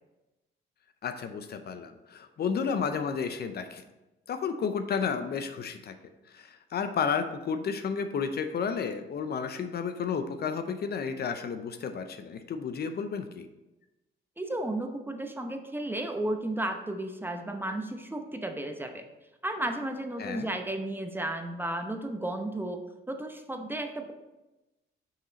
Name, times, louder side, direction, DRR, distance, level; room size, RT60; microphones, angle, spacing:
voice 1, 1.0-3.8 4.3-5.9 6.3-13.5 20.2-20.5, left 6 dB, 55° left, 8 dB, 0.6 m, -32 dB
voice 2, 14.4-19.0 19.4-22.8 23.1-24.1, right 1 dB, 10° right, 5 dB, 0.7 m, -33 dB
6.0 x 5.6 x 4.0 m, 1.0 s
cardioid pair, 90°, 20 cm